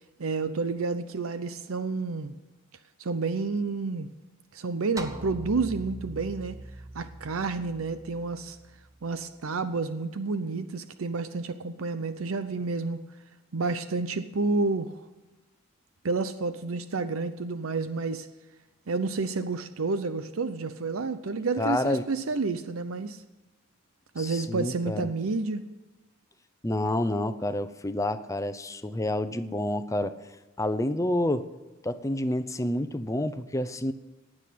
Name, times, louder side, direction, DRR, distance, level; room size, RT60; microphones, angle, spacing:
voice 1, 0.2-2.3 3.0-4.1 4.5-6.6 6.9-8.6 9.0-13.0 13.5-15.1 16.0-18.3 18.9-23.2 24.1-25.6, right 3 dB, 85° right, 11 dB, 0.7 m, -30 dB
sound 1, 5.0-9.4, right 2 dB, 15° right, 1.0 m, -42 dB
voice 2, 21.6-22.0 24.2-25.0 26.6-30.2 30.6-31.4 31.8-33.9, left 1 dB, 15° left, 11 dB, 0.7 m, -28 dB
18.5 x 6.4 x 9.2 m, 1.2 s
head